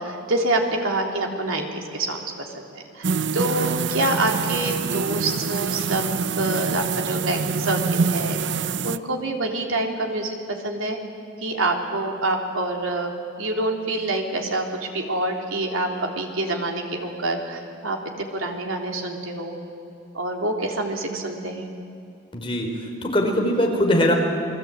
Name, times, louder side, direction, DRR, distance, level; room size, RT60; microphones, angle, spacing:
voice 1, 0.0-6.1 6.4-11.0 11.4-13.1 13.4-19.6 20.1-21.7, right 2 dB, 85° right, 2 dB, 3.5 m, -26 dB
sound 1, 3.0-9.0, right 5 dB, 60° right, 0.6 m, -25 dB
voice 2, 22.3-22.7 23.0-24.1, left 1 dB, 25° left, 2 dB, 3.9 m, -21 dB
28.5 x 21.5 x 8.9 m, 2.5 s
head